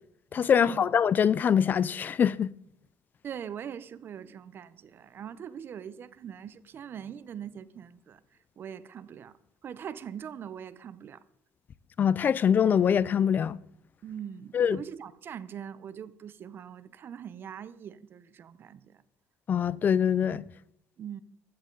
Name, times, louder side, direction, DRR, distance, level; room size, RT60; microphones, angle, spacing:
voice 1, 0.3-2.5 12.0-13.6 14.5-14.8 19.5-20.4, left 8 dB, 30° left, 0.4 m, -24 dB
voice 2, 3.2-8.2 8.6-9.4 9.6-11.2 14.0-19.0 21.0-21.2, right 8 dB, 35° right, 0.6 m, -42 dB
15.0 x 13.5 x 3.8 m
cardioid pair, 160°, 6 cm